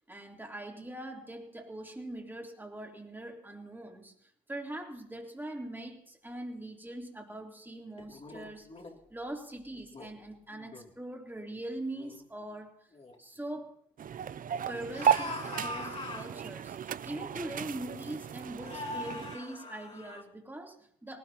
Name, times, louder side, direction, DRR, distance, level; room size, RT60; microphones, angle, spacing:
voice 1, 0.1-8.7 9.1-12.9 13.2-13.8 14.7-21.2, right 1 dB, 10° right, 1 dB, 3.2 m, -42 dB
sound 1, 8.0-9.0 9.7-10.1 10.5-10.9 11.6-11.7 11.9-12.2 12.9-13.2 14.9-16.3 17.3-17.4 18.6-20.2, left 2 dB, 30° left, 2.8 m, -42 dB
sound 2, 14.0-19.4, right 8 dB, 45° right, 0.5 m, -34 dB
19.0 x 18.5 x 2.9 m, 0.66 s
cardioid pair, 90°, 20 cm